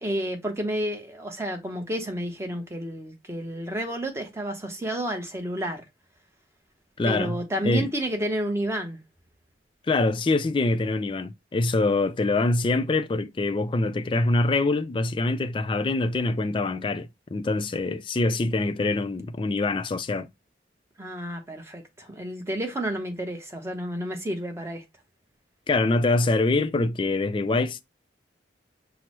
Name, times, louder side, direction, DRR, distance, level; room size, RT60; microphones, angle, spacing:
voice 1, 0.0-5.8 7.0-9.0 21.0-24.8, right 1 dB, 15° right, 0.8 m, -30 dB
voice 2, 7.0-7.4 7.6-7.9 9.9-20.3 25.7-27.8, left 2 dB, 25° left, 0.3 m, -24 dB
5.9 x 2.0 x 3.0 m
head